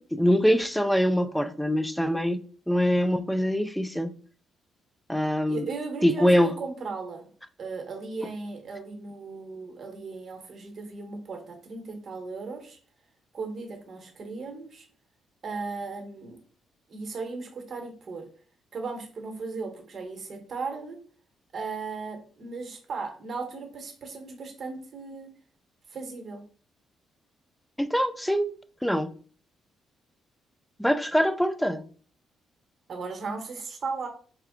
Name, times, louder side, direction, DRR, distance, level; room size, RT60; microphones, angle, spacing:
voice 1, 0.0-4.1 5.1-5.7 6.0-6.5 27.8-28.5 28.8-29.1 30.8-31.8, equal, 5° left, 0.4 m, -24 dB
voice 2, 5.5-7.3 7.6-12.8 13.3-14.9 15.4-16.4 16.9-18.3 18.7-21.0 21.5-25.3 25.9-26.4 32.9-34.1, right 4 dB, 45° right, 1.1 m, -36 dB
4.4 x 2.3 x 3.6 m
cardioid pair, 90°, 0 cm